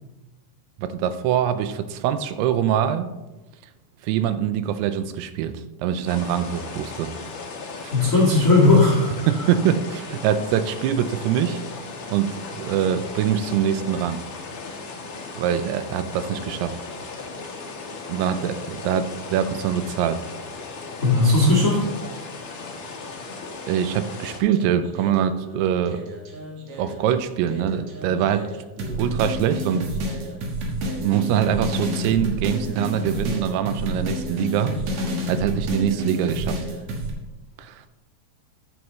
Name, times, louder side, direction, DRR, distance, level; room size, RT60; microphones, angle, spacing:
voice 1, 0.8-3.1 4.0-7.1 7.8-7.9 9.3-11.6 12.1-14.2 15.4-16.7 18.1-20.2 23.7-26.1 26.8-28.5 29.0-29.9 31.0-34.8 35.3-36.6 37.6-37.8, right 9 dB, 85° right, 11 dB, 2.6 m, -24 dB
sound 1, 6.1-24.4, left 4 dB, 70° left, 1.3 m, -37 dB
voice 2, 7.9-9.1 21.0-21.8, left 2 dB, 40° left, -3 dB, 1.1 m, -16 dB
sound 2, 24.4-27.0 27.5-37.1, equal, 55° right, 2.4 m, -29 dB
13.5 x 7.8 x 3.1 m, 1.1 s
omnidirectional pair, 4.6 m